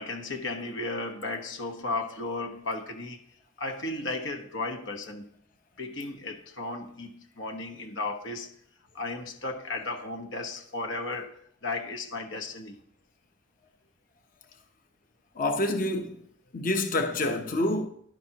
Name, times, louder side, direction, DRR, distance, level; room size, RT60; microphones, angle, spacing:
voice 1, 0.0-3.2 3.6-5.3 5.8-8.5 8.9-12.8, left 2 dB, 90° left, 1.2 m, -35 dB
voice 2, 15.4-16.2 16.5-17.9, left 1 dB, 50° left, 0.9 m, -27 dB
11.0 x 10.0 x 2.9 m
head